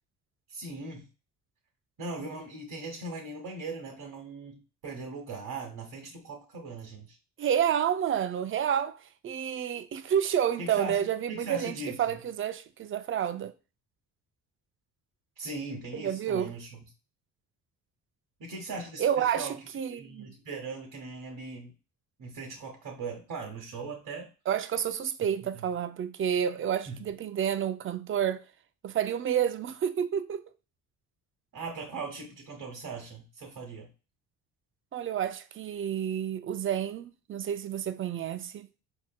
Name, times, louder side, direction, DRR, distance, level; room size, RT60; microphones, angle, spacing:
voice 1, 0.5-1.1 2.0-7.2 10.6-12.2 15.4-16.8 18.4-19.7 20.0-21.7 22.2-24.3 25.5-25.7 26.9-27.0 31.5-33.9, right 3 dB, 55° right, 1.1 m, -39 dB
voice 2, 7.4-13.5 15.9-16.5 19.0-19.5 19.7-20.3 24.5-28.4 28.8-30.4 34.9-38.8, right 9 dB, 35° right, 0.4 m, -29 dB
4.5 x 2.8 x 2.2 m
supercardioid pair, 70°, 40 cm